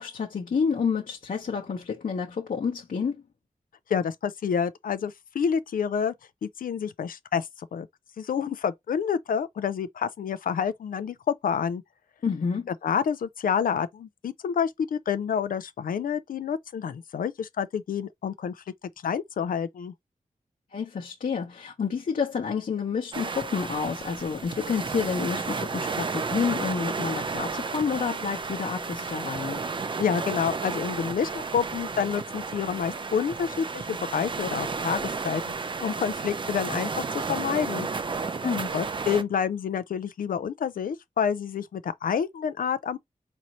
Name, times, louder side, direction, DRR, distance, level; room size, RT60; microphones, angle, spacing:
voice 1, 0.0-3.2 12.2-12.7 20.7-29.6 38.4-38.7, left 6 dB, 70° left, 0.8 m, -29 dB
voice 2, 3.9-6.1 6.4-7.9 8.2-11.8 12.8-18.6 19.0-19.9 30.0-35.4 35.8-37.9 38.7-43.0, left 7 dB, 90° left, 0.4 m, -28 dB
sound 1, 23.1-39.2, right 4 dB, 35° right, 0.4 m, -32 dB
4.2 x 2.6 x 3.0 m
wide cardioid pair, 120°, 14 cm